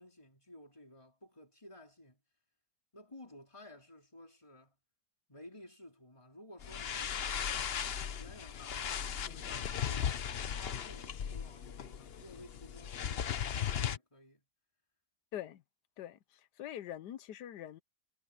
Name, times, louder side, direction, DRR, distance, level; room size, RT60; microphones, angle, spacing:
voice 1, 0.0-2.2 2.9-4.7 5.3-7.8 8.1-14.4, left 1 dB, 20° left, 4.3 m, -55 dB
sound 1, 6.6-14.0, left 8 dB, 50° left, 0.8 m, -37 dB
voice 2, 15.3-15.6 16.0-17.8, left 11 dB, 90° left, 1.4 m, -44 dB
omnidirectional pair, 1.7 m